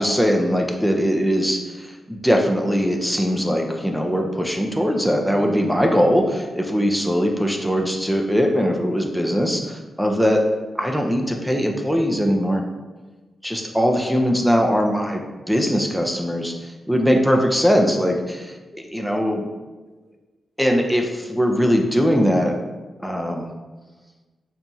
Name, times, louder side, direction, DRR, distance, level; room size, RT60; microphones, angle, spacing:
voice 1, 0.0-10.5 10.8-12.6 13.4-19.5 20.6-22.6 23.0-23.5, equal, ahead, 2 dB, 0.4 m, -21 dB
4.0 x 2.8 x 2.3 m, 1.2 s
cardioid pair, 85°, 0 cm